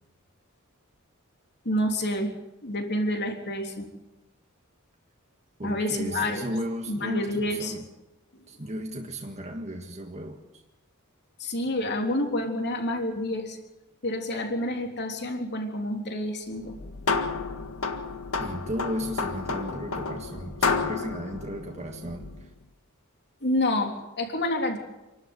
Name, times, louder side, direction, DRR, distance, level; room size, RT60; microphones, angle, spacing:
voice 1, 1.6-2.3 2.6-3.9 5.6-6.5 6.9-7.7 11.4-13.6 14.0-16.7 23.4-24.8, left 1 dB, 50° left, 3 dB, 3.4 m, -28 dB
voice 2, 5.6-7.8 8.5-10.4 18.4-22.5, equal, 30° right, 2 dB, 1.7 m, -34 dB
sound 1, 16.6-22.5, left 4 dB, 70° left, 1.7 m, -31 dB
28.0 x 12.5 x 8.0 m, 1.0 s
head